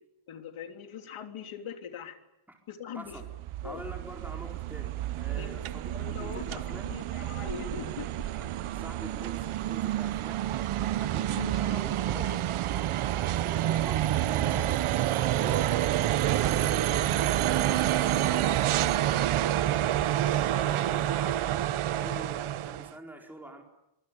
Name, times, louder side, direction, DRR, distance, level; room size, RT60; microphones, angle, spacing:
voice 1, 0.3-2.2 2.7-3.2 3.6-3.8 5.4-8.1 11.4-11.8 12.1-12.4, left 7 dB, 80° left, 5 dB, 3.4 m, -42 dB
voice 2, 2.9-3.3 3.6-6.9 8.3-12.3 12.7-17.1 20.5-21.7 21.9-23.6, right 1 dB, 5° right, 1 dB, 4.4 m, -46 dB
sound 1, 3.1-22.9, right 13 dB, 85° right, 1.0 m, -28 dB
sound 2, 13.7-21.1, left 2 dB, 15° left, 5.1 m, -48 dB
25.5 x 23.5 x 9.9 m, 0.87 s
wide cardioid pair, 165°, 48 cm